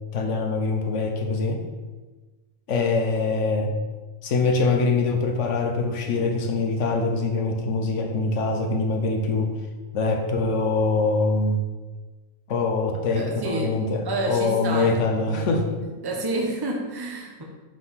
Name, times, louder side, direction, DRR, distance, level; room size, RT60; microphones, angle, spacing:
voice 1, 0.1-1.6 2.7-3.8 4.2-9.6 9.9-11.6 12.5-15.7, left 3 dB, 65° left, 3 dB, 1.3 m, -24 dB
voice 2, 13.1-13.8 14.0-14.9 15.2-17.4, right 2 dB, 20° right, 0 dB, 0.9 m, -29 dB
5.7 x 5.2 x 5.8 m, 1.3 s
omnidirectional pair, 1.4 m